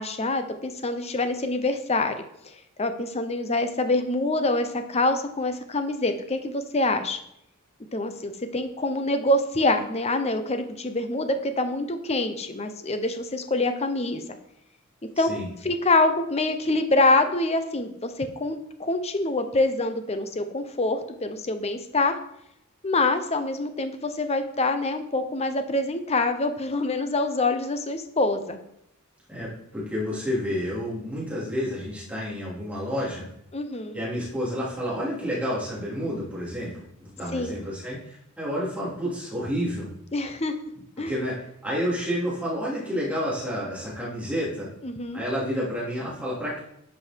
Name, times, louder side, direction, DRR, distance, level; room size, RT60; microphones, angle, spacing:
voice 1, 0.0-2.2 2.8-7.2 7.9-14.2 15.2-15.3 15.6-22.2 22.8-28.6 33.5-34.0 37.3-37.6 40.1-40.5 41.0-41.1 44.8-45.2, left 2 dB, 30° left, 8 dB, 0.8 m, -25 dB
voice 2, 15.2-15.5 29.3-33.3 33.9-39.9 41.0-44.7 45.1-46.6, equal, 5° right, -8 dB, 3.5 m, -30 dB
10.5 x 5.5 x 4.6 m, 0.77 s
head